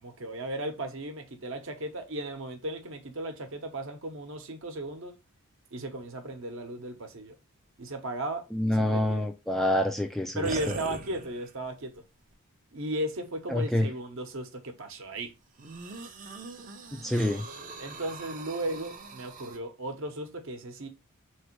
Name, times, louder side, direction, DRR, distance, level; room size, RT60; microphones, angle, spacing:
voice 1, 0.0-5.1 5.7-7.3 7.8-9.3 10.3-12.0 12.7-15.3 17.8-20.9, right 1 dB, 60° right, 0.9 m, -36 dB
voice 2, 8.5-10.5 13.5-13.9 16.9-17.5, left 1 dB, ahead, 0.3 m, -27 dB
sound 1, 10.4-11.7 12.3-12.4 15.6-19.6, right 3 dB, 35° right, 0.6 m, -41 dB
4.3 x 3.2 x 3.0 m
head